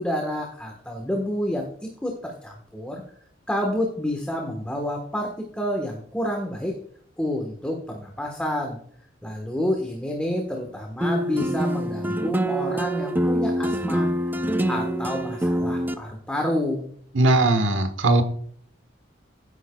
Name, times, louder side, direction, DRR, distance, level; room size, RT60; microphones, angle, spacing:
voice 1, 0.0-3.0 3.5-6.7 7.2-8.8 9.2-14.1 14.6-16.9, left 1 dB, 5° left, 1 dB, 1.3 m, -29 dB
sound 1, 11.0-15.9, equal, 10° right, 0.5 m, -25 dB
voice 2, 17.1-18.2, right 2 dB, 85° right, 8 dB, 1.2 m, -19 dB
13.0 x 10.0 x 2.3 m, 0.62 s
head